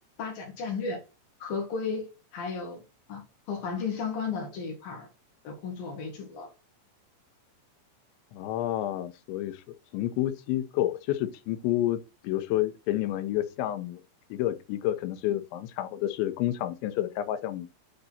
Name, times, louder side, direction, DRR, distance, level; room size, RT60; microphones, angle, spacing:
voice 1, 0.2-1.0 1.4-2.1 2.3-2.8 3.1-5.1 5.4-6.5 15.3-15.4, left 5 dB, 60° left, 3.3 m, -34 dB
voice 2, 8.3-9.6 9.9-14.0 14.3-17.7, left 13 dB, 90° left, 3.1 m, -29 dB
9.2 x 4.0 x 5.7 m
omnidirectional pair, 5.2 m